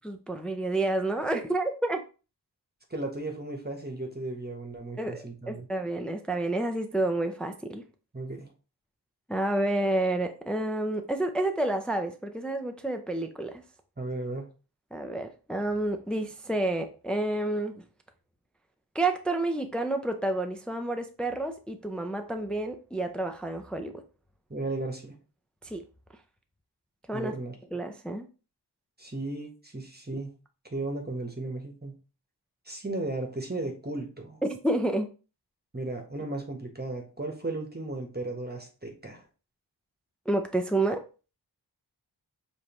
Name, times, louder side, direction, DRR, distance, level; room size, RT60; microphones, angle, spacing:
voice 1, 0.0-2.0 5.0-7.8 9.3-13.6 14.9-17.8 18.9-24.0 25.6-25.8 27.1-27.3 27.7-28.3 34.4-35.1 40.3-41.0, right 2 dB, ahead, 6 dB, 0.5 m, -29 dB
voice 2, 2.9-5.7 8.1-8.5 14.0-14.5 24.5-25.1 27.1-27.5 29.0-30.3 30.7-31.9 32.7-34.4 35.7-39.2, right 2 dB, 25° right, 3 dB, 1.2 m, -35 dB
5.0 x 3.1 x 3.0 m, 0.34 s
cardioid pair, 45°, 42 cm